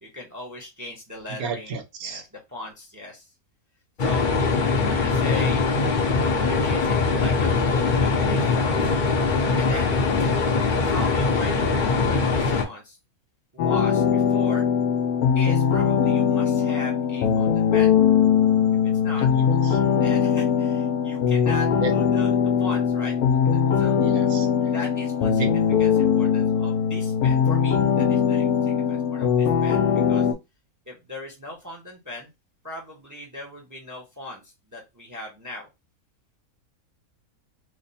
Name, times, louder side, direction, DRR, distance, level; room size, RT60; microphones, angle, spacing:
voice 1, 0.0-3.3 4.0-4.4 4.9-5.6 6.2-8.9 9.5-10.0 10.8-13.0 13.5-14.7 15.3-17.9 19.0-19.3 20.0-23.2 23.4-24.0 24.7-30.3 30.9-32.3 32.6-35.7, left 1 dB, 15° right, 0 dB, 0.6 m, -39 dB
voice 2, 1.3-2.2 19.7-19.8 21.8-21.9 23.9-24.5 25.4-25.5, right 5 dB, 80° right, 6 dB, 1.2 m, -31 dB
sound 1, 4.0-12.6, left 4 dB, 45° left, 0.6 m, -22 dB
sound 2, 13.6-30.3, left 7 dB, 85° left, 1.1 m, -21 dB
3.3 x 2.1 x 4.0 m, 0.23 s
omnidirectional pair, 1.5 m